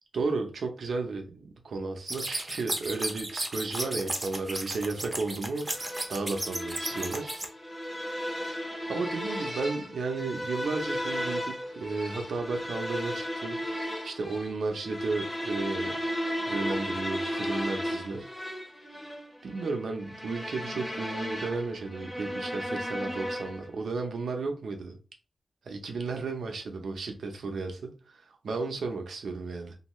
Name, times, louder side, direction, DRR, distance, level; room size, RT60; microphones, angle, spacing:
voice 1, 0.1-7.5 8.9-13.6 14.0-16.0 16.5-18.3 19.4-25.0 25.6-29.8, right 3 dB, 80° right, 0.6 m, -33 dB
sound 1, 2.1-7.5, right 1 dB, 20° right, 0.5 m, -34 dB
sound 2, 5.7-23.7, equal, 15° left, 0.7 m, -35 dB
2.7 x 2.2 x 3.0 m
wide cardioid pair, 125°, 0 cm